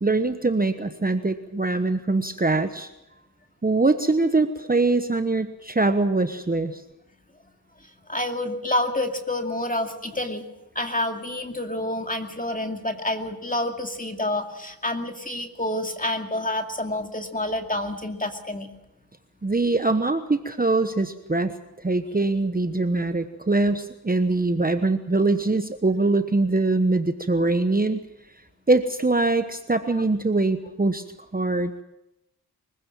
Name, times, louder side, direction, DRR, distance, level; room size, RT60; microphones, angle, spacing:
voice 1, 0.0-2.9 3.6-6.8 19.4-28.1 28.7-31.0 31.3-31.7, right 2 dB, 20° right, 9 dB, 1.1 m, -23 dB
voice 2, 7.8-10.4 10.7-18.7 29.9-30.0, left 1 dB, 20° left, 4 dB, 2.4 m, -28 dB
23.5 x 15.5 x 7.5 m, 0.92 s
cardioid pair, 50°, 39 cm